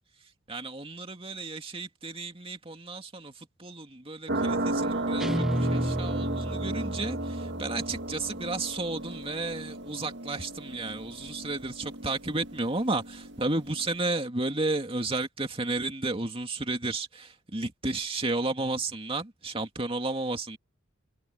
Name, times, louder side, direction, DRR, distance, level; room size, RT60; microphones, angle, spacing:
voice 1, 0.5-3.3 3.6-20.6, right 2 dB, 30° right, 2.5 m, -32 dB
sound 1, 4.3-13.9, right 2 dB, 60° right, 1.8 m, -34 dB
Guitar, 5.2-8.4, equal, ahead, 0.5 m, -32 dB
head